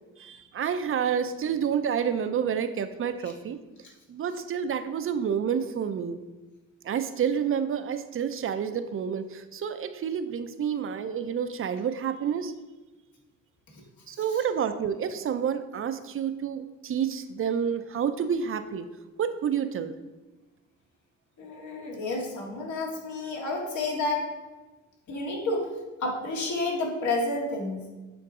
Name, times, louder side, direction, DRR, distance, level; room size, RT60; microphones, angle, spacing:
voice 1, 0.2-3.6 4.1-6.2 6.8-12.5 14.1-18.9 19.2-19.9, right 7 dB, 45° right, 10 dB, 0.5 m, -29 dB
voice 2, 14.1-14.4 21.4-24.3 25.1-25.7 26.0-27.9, left 2 dB, 70° left, -1 dB, 1.9 m, -30 dB
8.5 x 3.9 x 3.7 m, 1.2 s
cardioid pair, 90°, 30 cm